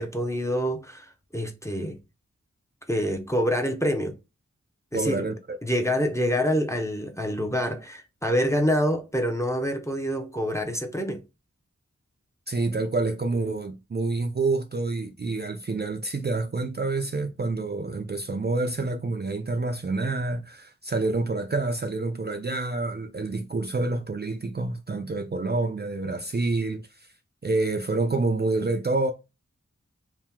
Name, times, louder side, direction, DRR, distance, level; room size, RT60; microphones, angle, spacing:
voice 1, 0.0-2.0 2.9-4.2 4.9-5.3 5.6-11.2, equal, 10° left, 0.6 m, -26 dB
voice 2, 4.9-5.6 12.5-27.1 27.4-29.1, right 3 dB, 35° right, 0.4 m, -28 dB
2.8 x 2.1 x 3.4 m
wide cardioid pair, 50°, 30 cm